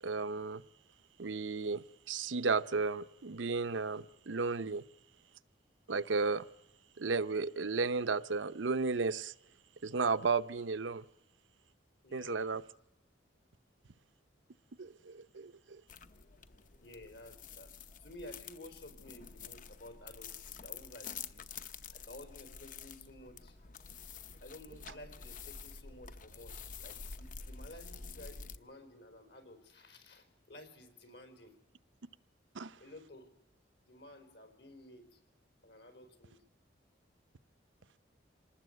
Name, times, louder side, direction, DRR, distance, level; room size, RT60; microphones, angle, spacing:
voice 1, 0.0-0.6 1.2-4.8 5.9-6.5 7.0-9.3 9.8-11.1 12.1-12.6 14.8-15.8 32.5-32.8, right 4 dB, 85° right, 0.7 m, -34 dB
voice 2, 12.0-12.5 16.8-17.7 18.0-21.5 21.9-23.6 24.4-31.5 32.8-33.3 33.8-35.2 35.6-36.4, left 1 dB, 70° left, 4.3 m, -53 dB
sound 1, 15.9-28.6, left 6 dB, 45° left, 0.8 m, -48 dB
26.5 x 19.0 x 7.9 m
head